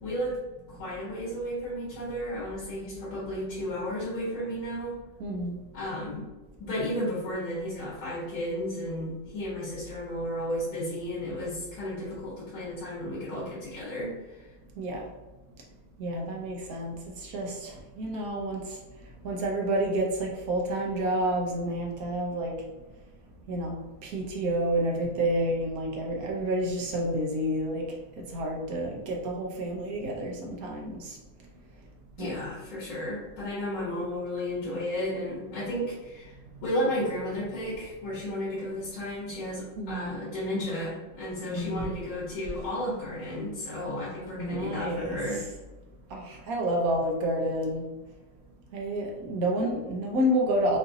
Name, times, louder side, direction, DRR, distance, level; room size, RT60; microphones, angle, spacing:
voice 1, 0.0-5.0 5.7-6.3 6.6-14.4 32.2-36.3 36.6-45.4, left 1 dB, 90° left, -9 dB, 2.3 m, -33 dB
voice 2, 5.2-5.6 14.8-15.0 16.0-16.9 17.2-18.6 19.2-22.5 23.5-27.9 28.2-31.2 32.2-32.4 34.0-34.1 39.8-40.1 41.5-41.9 43.2-43.3 44.4-45.2 46.1-47.9 48.7-50.8, right 1 dB, 60° right, 0 dB, 1.0 m, -29 dB
5.5 x 2.7 x 2.6 m, 1.1 s
omnidirectional pair, 2.1 m